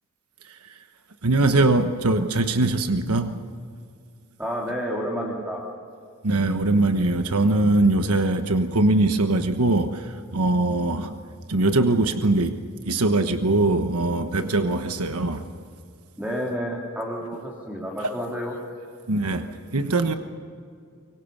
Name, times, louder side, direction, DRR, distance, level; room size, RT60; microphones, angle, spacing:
voice 1, 1.2-3.4 6.2-11.2 11.5-12.6 12.8-15.4 19.1-19.5 19.7-20.1, right 2 dB, 90° right, 7 dB, 1.3 m, -22 dB
voice 2, 4.4-5.7 16.2-18.5, equal, 5° right, -2 dB, 3.0 m, -30 dB
25.0 x 23.5 x 6.7 m, 2.3 s
head